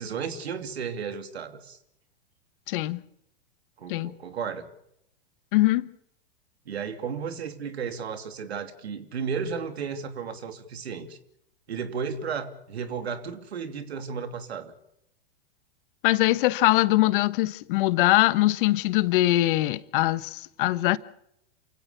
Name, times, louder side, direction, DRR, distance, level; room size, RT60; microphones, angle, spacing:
voice 1, 0.0-1.8 3.8-4.6 6.6-11.2 11.7-14.7, right 6 dB, 80° right, 2.9 m, -34 dB
voice 2, 2.7-3.0 3.9-4.1 5.5-5.8 16.0-21.0, left 17 dB, 55° left, 1.1 m, -22 dB
28.5 x 16.5 x 7.0 m
hypercardioid pair, 110°, 31 cm